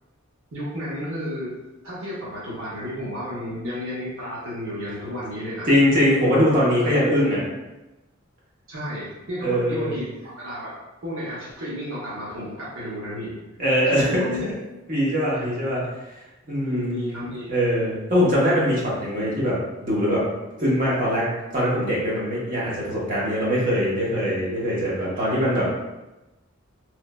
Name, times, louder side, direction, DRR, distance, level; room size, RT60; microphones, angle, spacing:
voice 1, 0.5-1.6 1.8-5.8 6.8-7.0 8.7-10.7 11.0-13.4 13.8-14.5 15.3-15.5 16.6-17.5 25.1-25.2, equal, 70° right, -7 dB, 0.7 m, -32 dB
voice 2, 5.7-7.4 9.4-9.9 13.6-14.2 14.9-15.8 16.5-16.9 17.5-19.6 19.8-20.2 20.6-21.3 21.5-25.7, equal, 40° right, -6 dB, 0.8 m, -22 dB
3.0 x 2.0 x 2.2 m, 1.0 s
head